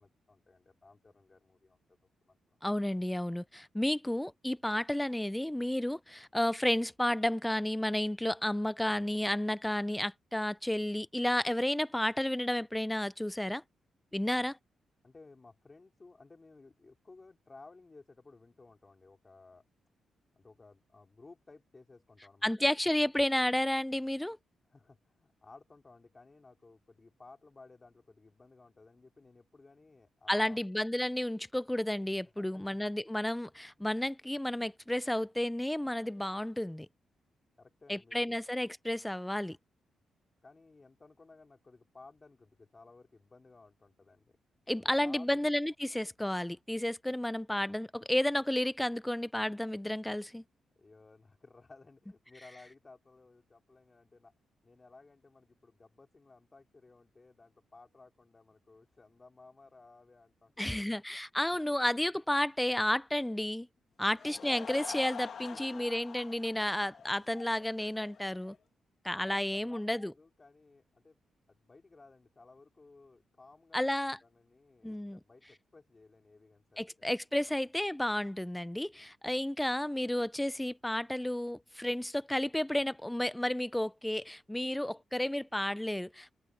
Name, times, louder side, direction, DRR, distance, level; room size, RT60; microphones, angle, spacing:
voice 1, 0.0-1.8 2.2-2.6 15.0-19.6 20.4-22.7 24.7-30.6 32.2-32.8 37.6-38.4 40.4-44.4 44.8-45.5 50.8-54.3 54.6-60.9 65.5-65.8 69.2-71.2 71.5-76.9, left 3 dB, 20° left, 3.7 m, -57 dB
voice 2, 2.6-13.6 14.1-14.6 22.4-24.4 30.3-36.9 37.9-39.6 44.7-50.4 60.6-63.7 64.0-68.6 69.0-70.1 73.7-74.2 74.8-75.2 76.8-86.3, left 1 dB, 5° left, 0.4 m, -32 dB
Laughter / Crowd, 64.0-68.6, left 6 dB, 50° left, 1.4 m, -46 dB
wide cardioid pair, 155°, 0 cm